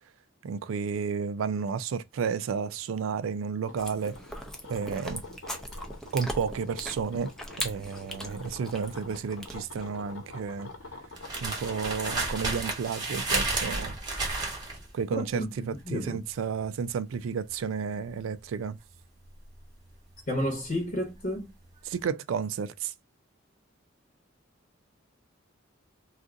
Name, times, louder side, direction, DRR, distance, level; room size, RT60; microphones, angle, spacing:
voice 1, 0.4-4.2 4.7-5.2 6.1-7.3 7.6-10.7 11.4-14.0 14.9-18.8 21.8-22.9, right 6 dB, 90° right, 0.3 m, -32 dB
sound 1, 3.6-12.4, left 3 dB, 85° left, 1.0 m, -46 dB
Chewing mastication, 3.8-9.9, equal, ahead, 0.4 m, -40 dB
sound 2, 5.2-21.4 21.6-22.0, right 2 dB, 20° right, 1.1 m, -34 dB
voice 2, 15.1-15.5 15.9-16.2 20.3-21.5, equal, 45° left, 0.9 m, -31 dB
2.5 x 2.4 x 3.6 m
head